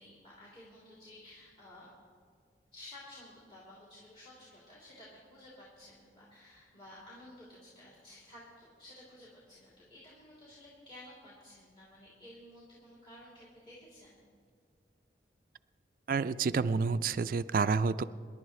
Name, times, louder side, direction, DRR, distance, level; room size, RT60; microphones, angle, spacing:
voice 1, 0.0-1.9 2.7-14.2, left 1 dB, 30° left, -8 dB, 3.0 m, -53 dB
voice 2, 16.1-18.0, right 5 dB, 50° right, 13 dB, 0.3 m, -29 dB
26.5 x 11.5 x 3.2 m, 2.1 s
head